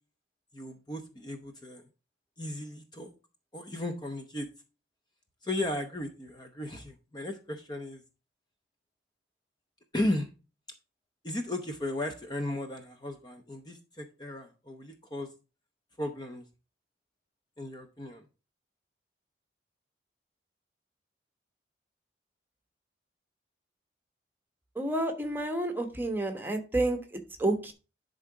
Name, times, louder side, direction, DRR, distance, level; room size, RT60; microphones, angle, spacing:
voice 1, 0.5-1.8 2.4-3.1 3.5-4.5 5.4-8.0 9.9-10.3 11.2-15.3 16.0-16.4 17.6-18.3, left 1 dB, 25° left, 5 dB, 0.8 m, -35 dB
voice 2, 24.7-27.7, right 2 dB, 10° right, 4 dB, 1.2 m, -30 dB
11.0 x 3.9 x 4.7 m, 0.31 s
head